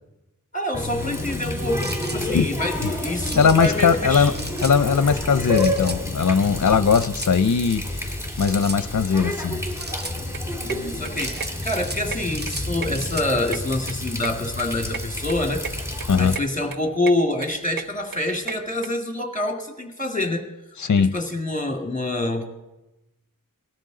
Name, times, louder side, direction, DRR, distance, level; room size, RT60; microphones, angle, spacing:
voice 1, 0.5-4.3 10.6-15.9 16.2-20.5 21.0-22.4, left 1 dB, 20° left, 2.0 m, -26 dB
Water tap faucet, 0.7-16.4, left 1 dB, 10° right, 2.3 m, -29 dB
sound 1, 1.8-2.2 3.2-3.6 4.3-4.8 5.5-6.0 6.9-7.3 8.4-8.8 9.8-10.2 11.2-12.0 12.3-13.3, right 2 dB, 30° right, 0.8 m, -36 dB
voice 2, 3.4-4.3 4.6-9.6 16.1-16.4 20.8-21.2, left 6 dB, 60° left, 0.6 m, -20 dB
sound 2, 10.3-18.9, right 5 dB, 90° right, 0.6 m, -36 dB
19.0 x 13.0 x 3.8 m
wide cardioid pair, 40°, 34 cm